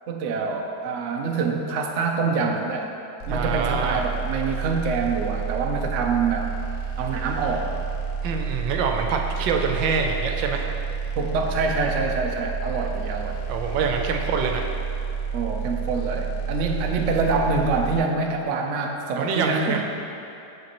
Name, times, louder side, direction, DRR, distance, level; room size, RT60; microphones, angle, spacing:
voice 1, 0.1-2.9 3.3-6.5 7.0-7.7 11.1-13.4 15.3-19.8, right 4 dB, 70° right, 2 dB, 0.7 m, -25 dB
sound 1, 3.2-18.0, right 6 dB, 60° left, 0.4 m, -30 dB
voice 2, 3.3-4.1 8.2-10.7 13.5-14.6 19.1-19.8, right 5 dB, 85° right, 3 dB, 1.4 m, -25 dB
8.8 x 6.0 x 3.0 m, 2.7 s
omnidirectional pair, 2.0 m